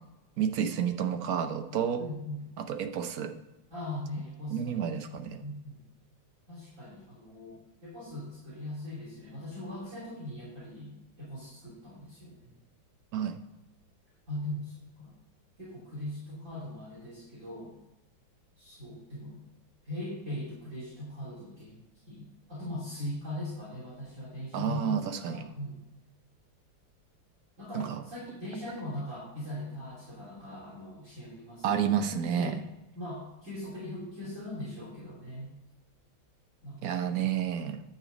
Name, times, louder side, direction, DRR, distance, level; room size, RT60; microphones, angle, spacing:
voice 1, 0.4-2.0 2.6-3.3 4.5-5.4 13.1-13.3 24.5-25.5 27.7-28.0 31.6-32.6 36.8-37.8, right 8 dB, 60° right, 8 dB, 1.0 m, -30 dB
voice 2, 2.0-2.4 3.7-4.8 5.4-5.8 6.5-12.5 14.3-15.1 15.6-17.7 18.6-19.4 19.8-25.8 27.6-32.1 32.3-32.6 33.0-35.5 36.6-36.9, left 1 dB, 40° right, -9 dB, 3.4 m, -40 dB
10.0 x 6.0 x 5.1 m, 1.0 s
omnidirectional pair, 2.1 m